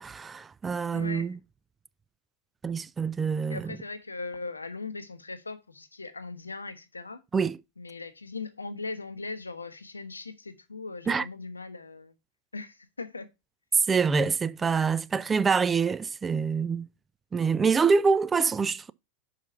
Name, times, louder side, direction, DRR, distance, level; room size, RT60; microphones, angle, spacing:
voice 1, 0.0-1.4 2.6-3.8 7.3-7.6 11.1-11.3 13.7-16.9 17.3-18.9, right 5 dB, 15° right, 0.3 m, -25 dB
voice 2, 0.9-1.3 3.5-7.2 7.8-12.1 12.5-13.3, left 3 dB, 80° left, 0.8 m, -39 dB
5.6 x 5.0 x 5.5 m
figure-of-eight pair, 90°, 0 cm